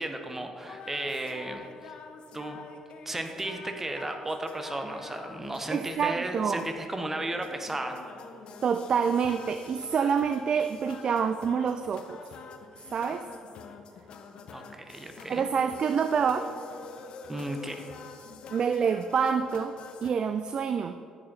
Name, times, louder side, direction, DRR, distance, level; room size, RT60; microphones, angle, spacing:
voice 1, 0.0-2.0 2.3-2.6 3.0-8.0 14.5-15.5 17.3-17.9, right 1 dB, 15° right, 5 dB, 1.2 m, -34 dB
sound 1, 0.7-20.1, left 4 dB, 50° left, 0.8 m, -46 dB
voice 2, 5.7-6.6 8.6-12.3 12.9-13.3 15.3-16.5 18.5-21.0, right 6 dB, 45° right, 10 dB, 0.4 m, -27 dB
10.0 x 8.9 x 4.3 m, 2.4 s
figure-of-eight pair, 45°, 2 cm